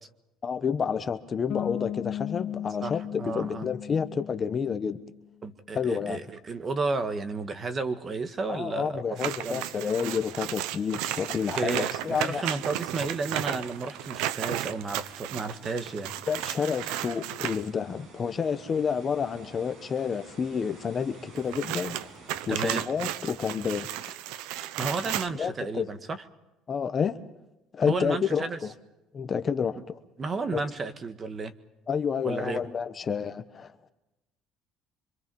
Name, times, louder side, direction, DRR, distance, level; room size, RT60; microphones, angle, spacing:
voice 1, 0.4-5.0 5.7-6.2 8.5-12.4 16.3-22.0 22.5-23.9 25.4-25.9 26.7-27.2 27.8-28.7 29.1-30.0 30.5-30.6 31.9-33.7, left 6 dB, 30° left, 9 dB, 1.1 m, -29 dB
Bass guitar, 1.5-5.2, left 11 dB, 50° left, 1.6 m, -36 dB
voice 2, 3.2-3.7 5.4-9.0 9.4-9.6 11.6-16.1 22.5-22.8 24.8-26.2 27.9-28.6 30.2-31.5 32.2-32.6, right 4 dB, 25° right, 10 dB, 1.6 m, -32 dB
sound 1, 9.2-17.7 21.4-25.3, right 13 dB, 85° right, 0.9 m, -34 dB
sound 2, 11.3-22.5, right 3 dB, 60° right, 7.1 m, -52 dB
25.5 x 25.0 x 5.5 m, 0.97 s
cardioid pair, 140°, 0 cm